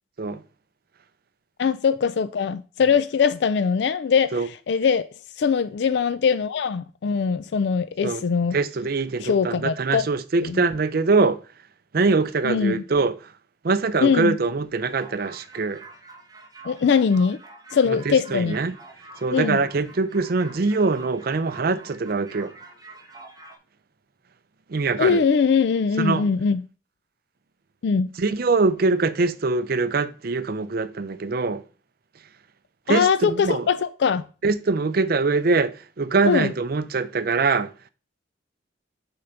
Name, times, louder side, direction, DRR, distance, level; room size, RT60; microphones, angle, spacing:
voice 1, 1.6-4.4 4.7-5.0 5.4-8.5 9.2-10.1 10.4-10.6 12.4-12.8 14.0-14.4 16.7-17.4 17.7-18.6 19.3-19.6 25.0-26.6 27.8-28.1 32.9-34.2 36.2-36.5, left 6 dB, 60° left, 0.4 m, -21 dB
voice 2, 8.5-11.4 11.9-13.3 13.6-15.8 17.9-18.7 19.2-22.5 24.7-25.2 26.0-26.2 28.2-31.6 32.9-33.7 34.4-37.7, right 3 dB, 50° right, 0.5 m, -23 dB
sound 1, 14.8-23.5, right 3 dB, 20° right, 1.3 m, -46 dB
6.6 x 3.9 x 5.8 m
head